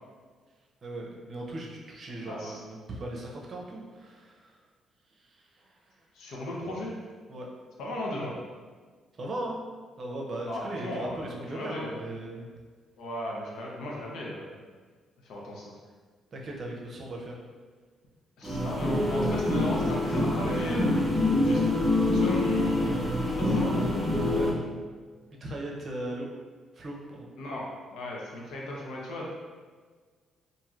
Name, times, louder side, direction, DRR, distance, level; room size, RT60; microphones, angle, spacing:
voice 1, 0.8-4.4 7.3-7.5 9.2-9.6 10.0-12.5 16.3-17.4 24.3-24.5 25.4-26.3 26.8-27.3, right 1 dB, 50° right, -1 dB, 0.6 m, -38 dB
voice 2, 2.2-2.6 6.1-7.0 7.8-8.3 10.4-12.0 13.0-14.5 15.2-15.7 18.4-20.8 21.4-21.7 22.0-22.9 23.2-23.9 27.4-29.3, left 1 dB, 80° left, -3 dB, 0.7 m, -36 dB
sound 1, 18.4-24.5, left 1 dB, 10° right, 0.7 m, -26 dB
3.0 x 2.6 x 2.4 m, 1.5 s
cardioid pair, 90°, 0 cm